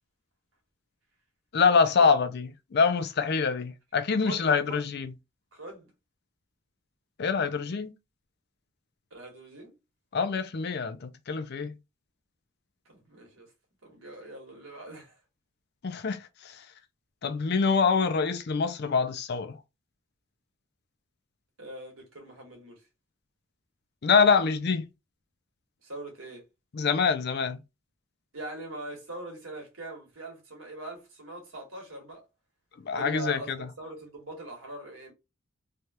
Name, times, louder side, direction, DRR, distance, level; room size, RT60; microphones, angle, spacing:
voice 1, 1.5-5.1 7.2-7.9 10.1-11.7 15.8-16.7 17.2-19.6 24.0-24.9 26.7-27.6 32.9-33.7, left 5 dB, 55° left, 0.5 m, -25 dB
voice 2, 4.2-4.8 5.5-5.9 9.1-9.7 12.9-13.5 13.8-15.2 21.6-22.8 25.8-26.4 28.3-32.2 32.9-35.1, right 2 dB, 80° right, 1.6 m, -42 dB
3.3 x 2.4 x 2.8 m
head